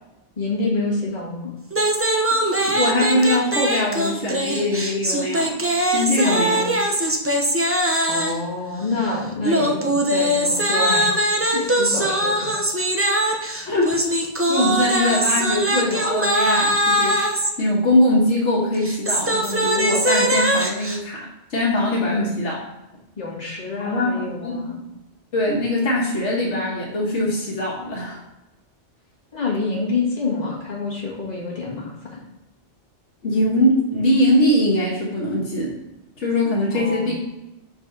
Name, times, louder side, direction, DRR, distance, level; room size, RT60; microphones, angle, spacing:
voice 1, 0.4-1.5 6.2-6.8 8.1-11.2 11.5-12.5 22.1-22.4 23.2-24.8 29.3-32.2 36.7-37.1, left 3 dB, 35° left, -5 dB, 1.9 m, -27 dB
sound 1, 1.7-8.5 9.4-17.5 18.7-21.0, right 1 dB, 20° right, 0.4 m, -21 dB
voice 2, 2.6-5.6 5.9-6.6 13.6-14.0 14.5-17.3 17.6-22.6 23.8-24.6 25.3-28.2 33.2-35.7 36.2-37.1, left 1 dB, 75° left, -3 dB, 1.5 m, -21 dB
6.3 x 4.8 x 3.8 m, 0.97 s
omnidirectional pair, 1.2 m